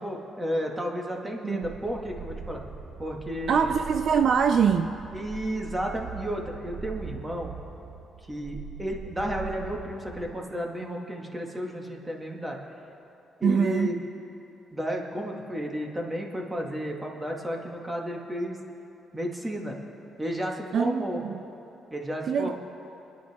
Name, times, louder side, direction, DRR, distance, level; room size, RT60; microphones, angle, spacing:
voice 1, 0.0-2.6 3.0-3.7 5.1-7.5 8.3-12.6 13.4-14.0 14.7-18.6 19.1-19.8 20.2-21.2 21.9-22.5, equal, 15° right, 0 dB, 2.0 m, -32 dB
sound 1, 1.6-10.3, right 5 dB, 35° right, 0.9 m, -41 dB
voice 2, 3.5-4.9 13.4-13.9 20.7-21.4 22.3-22.5, right 7 dB, 60° right, 8 dB, 0.5 m, -24 dB
25.0 x 10.0 x 3.7 m, 3.0 s
cardioid pair, 90°, 0 cm